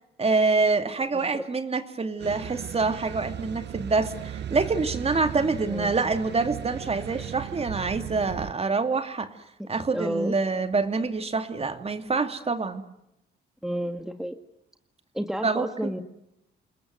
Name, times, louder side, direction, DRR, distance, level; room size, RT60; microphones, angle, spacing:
voice 1, 0.2-9.3 9.7-12.8 15.4-15.9, right 4 dB, 30° right, 8 dB, 2.5 m, -26 dB
voice 2, 1.1-1.5 5.7-5.9 9.9-10.4 13.6-14.4 15.1-16.0, equal, ahead, 7 dB, 1.9 m, -31 dB
sound 1, 2.2-8.5, right 10 dB, 60° right, 1.0 m, -36 dB
29.0 x 20.5 x 9.3 m, 0.85 s
cardioid pair, 90°, 20 cm